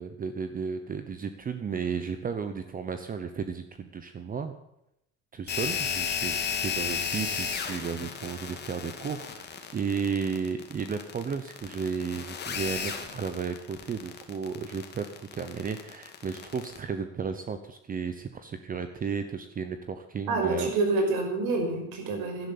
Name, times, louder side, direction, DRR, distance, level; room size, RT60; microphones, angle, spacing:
voice 1, 0.0-4.5 5.3-15.1 15.3-20.7, right 6 dB, 25° right, 9 dB, 0.9 m, -33 dB
sound 1, 5.5-16.8, left 7 dB, 30° left, 2.1 m, -34 dB
voice 2, 20.3-22.5, right 3 dB, 75° right, 3 dB, 5.9 m, -27 dB
12.0 x 11.0 x 8.6 m, 0.82 s
cardioid pair, 140°, 35 cm